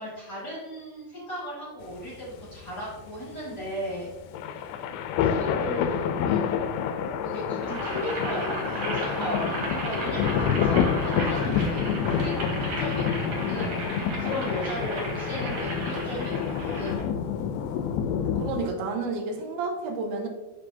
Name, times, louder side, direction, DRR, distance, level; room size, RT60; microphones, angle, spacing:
voice 1, 0.0-4.1 5.2-6.4 7.2-13.8 14.2-17.1, equal, 35° left, -8 dB, 2.0 m, -36 dB
sound 1, 1.8-18.7, left 7 dB, 85° left, 2.4 m, -28 dB
Boiling, 7.6-17.0, right 1 dB, 50° right, 2.3 m, -34 dB
voice 2, 18.4-20.3, right 3 dB, 85° right, 3 dB, 2.7 m, -30 dB
6.9 x 6.8 x 2.7 m, 1.2 s
omnidirectional pair, 4.5 m